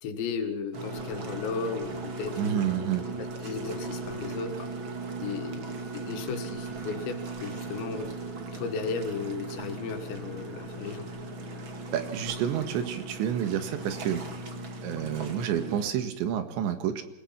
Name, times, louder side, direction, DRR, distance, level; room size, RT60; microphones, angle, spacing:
voice 1, 0.0-2.6 3.4-4.7 5.2-8.1 8.5-11.1, left 5 dB, 80° left, 6 dB, 4.2 m, -35 dB
sound 1, 0.7-15.9, right 2 dB, 40° right, 2.1 m, -38 dB
voice 2, 2.4-3.0 11.9-14.2 14.8-17.0, right 9 dB, 85° right, 9 dB, 4.0 m, -29 dB
27.5 x 18.5 x 5.9 m, 0.86 s
omnidirectional pair, 5.1 m